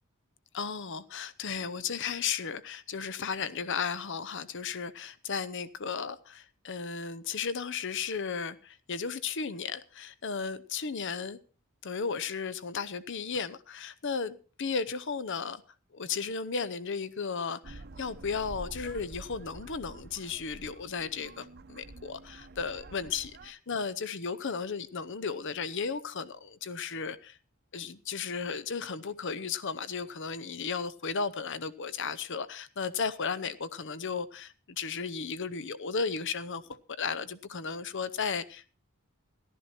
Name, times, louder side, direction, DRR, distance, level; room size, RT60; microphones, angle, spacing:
voice 1, 0.5-11.4 11.8-15.6 15.9-27.4 27.7-38.8, left 5 dB, 55° left, 0.8 m, -35 dB
sound 1, 17.6-23.5, right 2 dB, 50° right, 0.8 m, -48 dB
14.5 x 12.0 x 4.4 m
head